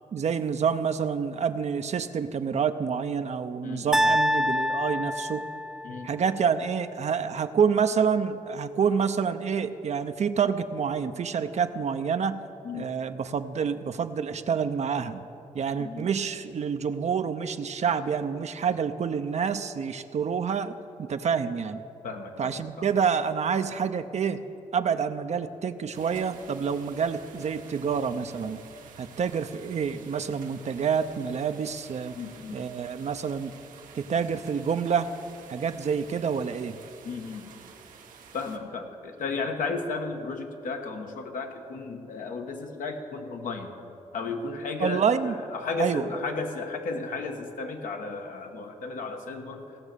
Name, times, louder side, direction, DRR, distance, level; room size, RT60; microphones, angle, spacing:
voice 1, 0.1-5.4 6.0-12.4 12.7-15.3 15.5-20.7 21.0-21.8 22.4-24.4 24.7-28.6 29.0-32.2 32.5-33.5 33.9-35.1 35.5-36.8 44.8-45.3 45.8-46.1, right 6 dB, 55° right, 9 dB, 0.6 m, -27 dB
voice 2, 3.6-4.1 5.8-6.1 12.6-12.9 15.8-16.1 22.0-22.9 32.1-32.6 37.0-37.5 38.3-43.8 44.1-49.8, left 3 dB, 80° left, 4 dB, 1.2 m, -34 dB
sound 1, 3.9-6.1, equal, 5° right, 0.5 m, -26 dB
sound 2, 25.9-38.6, right 6 dB, 85° right, 1.0 m, -50 dB
16.5 x 6.2 x 6.7 m, 2.9 s
cardioid pair, 60°, 13 cm